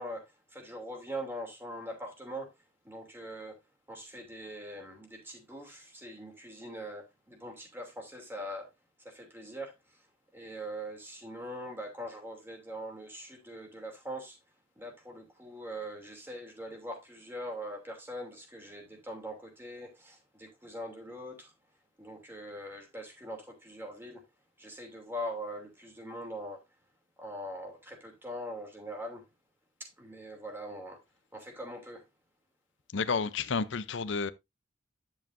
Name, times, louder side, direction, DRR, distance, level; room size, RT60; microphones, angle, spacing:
voice 1, 0.0-2.5 2.8-3.6 3.9-8.7 9.0-10.0 10.3-14.4 14.8-21.5 22.0-24.2 24.6-26.6 27.2-29.2 29.8-31.0 31.3-32.0, equal, 10° right, 2.8 m, -42 dB
voice 2, 32.9-34.3, left 5 dB, 65° left, 0.6 m, -31 dB
10.5 x 7.3 x 2.6 m
head